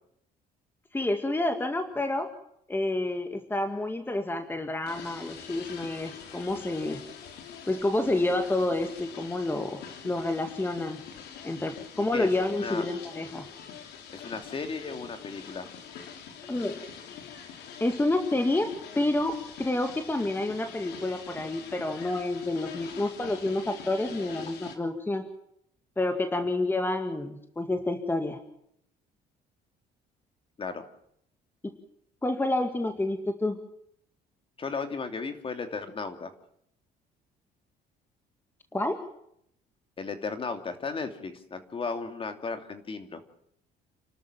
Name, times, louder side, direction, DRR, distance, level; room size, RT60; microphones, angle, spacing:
voice 1, 0.9-2.3 2.7-7.0 7.7-9.8 10.0-11.0 11.4-13.5 16.5-16.8 17.8-18.7 19.0-25.2 26.0-28.4 31.6-31.7 32.2-33.6 38.7-39.0, left 2 dB, 10° left, 6 dB, 2.0 m, -29 dB
sound 1, 4.9-24.8, left 7 dB, 85° left, 3.1 m, -45 dB
voice 2, 14.1-15.7 23.0-23.1 30.6-30.8 34.6-36.3 40.0-43.2, left 4 dB, 35° left, 7 dB, 2.9 m, -35 dB
29.5 x 13.0 x 7.5 m, 0.73 s
cardioid pair, 110°, 17 cm